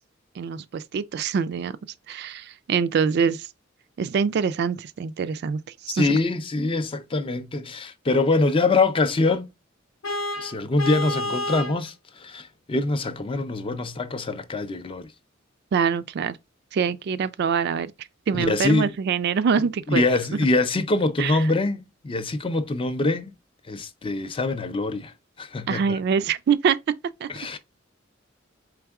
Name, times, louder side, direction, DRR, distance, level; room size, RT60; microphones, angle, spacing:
voice 1, 0.4-1.8 2.1-3.5 4.0-5.6 5.8-6.1 15.7-16.4 16.7-20.0 21.2-21.3 25.7-27.0 27.2-27.3, right 6 dB, 55° right, 0.3 m, -24 dB
voice 2, 5.9-9.5 10.4-15.1 18.3-18.9 19.9-23.3 23.7-26.0 27.3-27.6, left 3 dB, 25° left, 0.4 m, -24 dB
Vehicle horn car horn honking, 10.0-11.8, left 1 dB, 85° left, 0.7 m, -29 dB
4.6 x 3.4 x 2.3 m
head